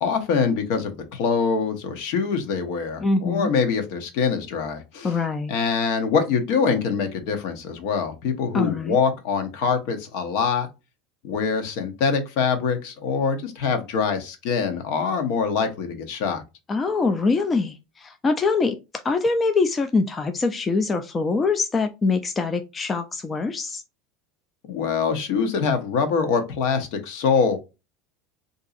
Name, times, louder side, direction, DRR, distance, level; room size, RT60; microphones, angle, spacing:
voice 1, 0.0-5.1 5.5-10.7 11.2-16.4 24.6-27.6, left 5 dB, 65° left, 0.9 m, -24 dB
voice 2, 3.0-3.5 5.0-5.5 8.5-9.0 16.7-18.8 19.0-23.8, left 4 dB, 20° left, 0.3 m, -23 dB
3.9 x 2.6 x 2.5 m
supercardioid pair, 150°, 0 cm